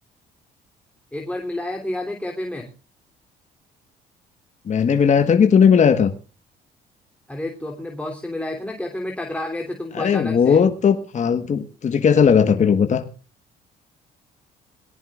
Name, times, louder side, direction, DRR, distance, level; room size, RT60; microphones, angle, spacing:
voice 1, 1.1-2.7 7.3-10.6, left 1 dB, 5° left, 1 dB, 3.1 m, -30 dB
voice 2, 4.7-6.1 9.9-13.1, left 7 dB, 45° left, 8 dB, 1.4 m, -17 dB
22.0 x 17.5 x 2.4 m, 0.35 s
cardioid pair, 85°, 17 cm